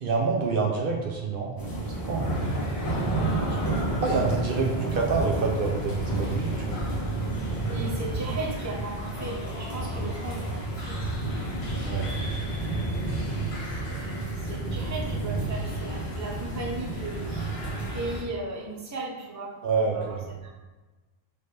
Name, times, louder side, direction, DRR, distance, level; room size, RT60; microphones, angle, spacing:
voice 1, 0.0-1.5 2.1-2.3 4.0-6.8 11.8-12.1 19.6-20.2, right 4 dB, 65° right, 0 dB, 0.7 m, -27 dB
sound 1, 1.6-18.2, right 2 dB, 20° left, 1.1 m, -30 dB
sound 2, 2.3-18.2, left 2 dB, 75° left, 1.1 m, -43 dB
voice 2, 3.1-3.9 7.6-11.0 13.8-19.5 19.9-20.0 20.4-20.5, right 2 dB, 20° right, -3 dB, 0.6 m, -36 dB
4.1 x 3.3 x 3.2 m, 1.2 s
omnidirectional pair, 1.1 m